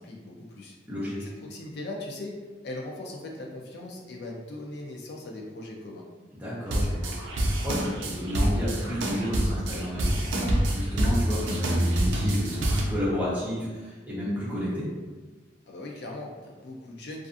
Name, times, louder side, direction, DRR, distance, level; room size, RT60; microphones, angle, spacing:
voice 1, 0.0-0.8 1.2-6.0 15.7-17.3, left 2 dB, 60° left, -1 dB, 0.4 m, -39 dB
voice 2, 0.9-1.3 6.4-14.9, equal, 10° right, -9 dB, 0.7 m, -32 dB
sound 1, 6.7-12.8, right 1 dB, 90° right, 0.5 m, -26 dB
2.4 x 2.4 x 2.5 m, 1.3 s
head